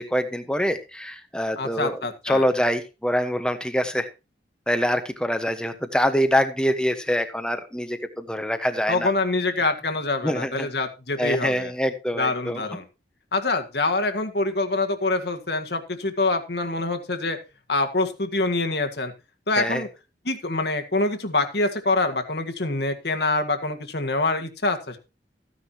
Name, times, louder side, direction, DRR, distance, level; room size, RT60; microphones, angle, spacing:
voice 1, 0.0-4.1 4.7-9.1 10.2-10.7 11.2-12.6 19.6-19.8, equal, 5° left, 9 dB, 1.2 m, -25 dB
voice 2, 1.6-2.5 8.9-11.7 12.2-12.8 13.3-17.4 17.7-19.1 19.5-19.9 20.3-25.0, left 2 dB, 65° left, 6 dB, 1.8 m, -25 dB
15.0 x 9.7 x 2.9 m, 0.29 s
head